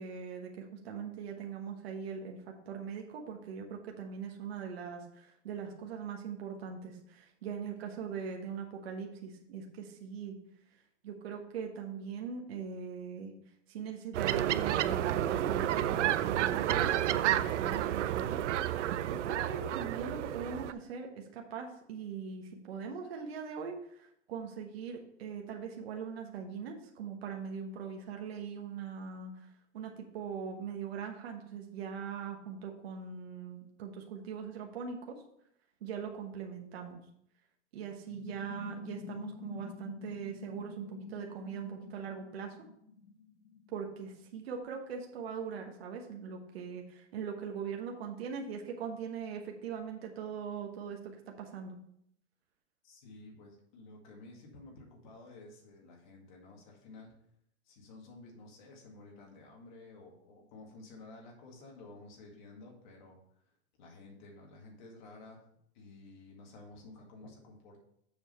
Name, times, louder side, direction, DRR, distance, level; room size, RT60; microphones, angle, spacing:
voice 1, 0.0-10.4 11.0-13.3 13.7-18.4 18.8-29.5 29.7-35.1 35.8-37.0 37.7-42.5 43.7-51.8, right 6 dB, 60° right, 2 dB, 1.2 m, -41 dB
sound 1, 14.1-20.7, right 12 dB, 85° right, 0.5 m, -30 dB
sound 2, 38.1-44.1, left 5 dB, 65° left, 1.3 m, -48 dB
voice 2, 52.8-57.1 57.7-63.2 63.8-65.4 65.7-67.8, left 2 dB, 40° left, 0 dB, 2.0 m, -52 dB
7.1 x 4.9 x 5.5 m, 0.73 s
supercardioid pair, 175°, 35 cm